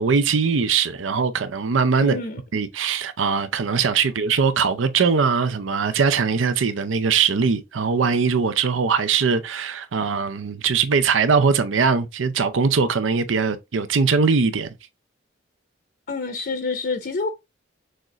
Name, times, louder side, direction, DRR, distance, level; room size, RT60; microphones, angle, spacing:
voice 1, 0.0-2.2 2.5-14.7, right 5 dB, 85° right, 0.5 m, -21 dB
voice 2, 2.0-2.6 16.1-17.3, left 4 dB, 50° left, 0.6 m, -28 dB
6.4 x 2.5 x 3.0 m
head